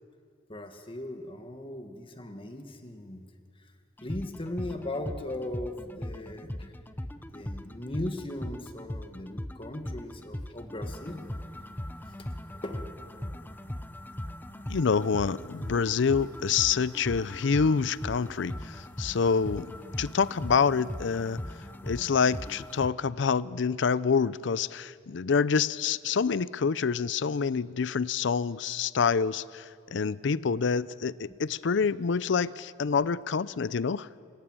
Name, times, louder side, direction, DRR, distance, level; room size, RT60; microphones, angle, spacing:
voice 1, 0.5-3.2 4.0-6.7 7.3-11.2 12.5-12.8, left 1 dB, 30° left, 5 dB, 1.6 m, -38 dB
sound 1, 4.0-22.9, left 1 dB, 10° left, 0.7 m, -39 dB
voice 2, 14.7-19.7 20.0-21.4 21.8-29.6 29.9-34.1, left 5 dB, 70° left, 18 dB, 0.5 m, -27 dB
26.5 x 15.0 x 8.8 m, 2.2 s
head